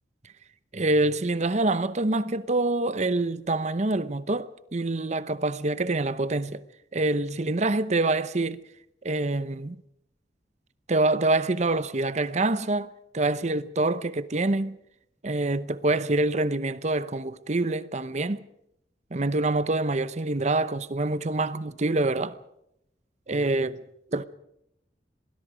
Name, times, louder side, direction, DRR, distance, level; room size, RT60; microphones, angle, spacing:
voice 1, 0.7-6.6 6.9-8.6 9.0-9.8 10.9-14.8 15.2-18.4 19.1-22.4 23.3-23.8 24.1-24.2, right 2 dB, 40° right, 0.8 m, -26 dB
27.0 x 20.0 x 5.1 m
head